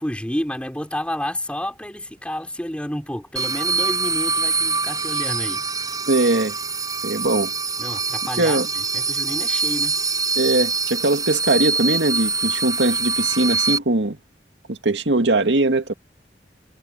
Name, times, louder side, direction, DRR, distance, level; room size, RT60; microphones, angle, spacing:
voice 1, 0.0-5.9 7.8-10.0, equal, 5° left, 4.6 m, -30 dB
sound 1, 3.4-13.8, right 4 dB, 20° right, 5.2 m, -24 dB
voice 2, 6.1-6.6 7.0-7.5 8.4-8.7 10.4-14.2 14.7-15.9, right 2 dB, 85° right, 2.1 m, -20 dB
head